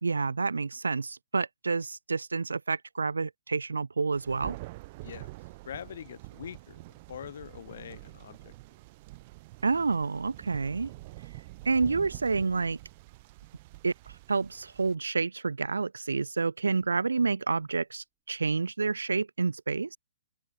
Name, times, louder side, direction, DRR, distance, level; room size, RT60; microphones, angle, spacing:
voice 1, 0.0-4.6 9.6-10.9 11.7-12.8 13.8-13.9 14.3-20.0, right 4 dB, 80° right, 0.5 m, -29 dB
Thunder, 4.2-14.9, right 21 dB, 40° right, 2.0 m, -46 dB
voice 2, 5.0-5.3 5.6-8.5, left 9 dB, 55° left, 0.7 m, -43 dB
sound 1, 15.1-15.3 16.7-18.0 18.3-18.7, right 12 dB, 20° right, 6.2 m, -71 dB
open air
figure-of-eight pair, 130°, 0 cm